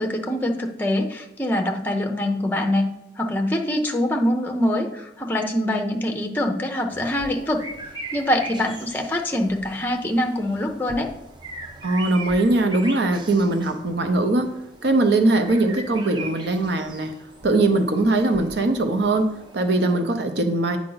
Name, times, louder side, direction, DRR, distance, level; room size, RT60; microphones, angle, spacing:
voice 1, 0.0-2.9 3.2-7.6 8.1-11.1, left 1 dB, 10° left, 3 dB, 0.6 m, -24 dB
sound 1, 6.9-19.9, right 2 dB, 25° right, 0.7 m, -40 dB
voice 2, 11.8-14.5 14.8-17.1 17.4-20.8, right 2 dB, 75° right, 7 dB, 0.7 m, -21 dB
8.7 x 4.8 x 3.9 m, 0.87 s
head